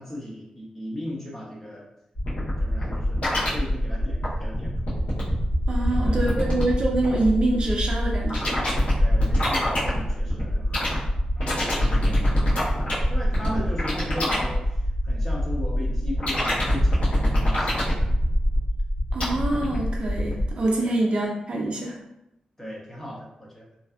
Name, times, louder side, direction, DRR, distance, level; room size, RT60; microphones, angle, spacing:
voice 1, 0.0-1.8 2.6-5.0 5.9-6.3 9.0-14.6 15.0-17.9 20.8-21.0 22.6-23.7, left 1 dB, 15° left, -4 dB, 0.7 m, -37 dB
sound 1, 2.2-20.5, equal, 65° left, 0.9 m, -25 dB
voice 2, 5.7-8.6 19.1-22.0, right 2 dB, 50° right, -1 dB, 0.5 m, -25 dB
2.6 x 2.2 x 2.3 m, 0.83 s
wide cardioid pair, 115°, 2 cm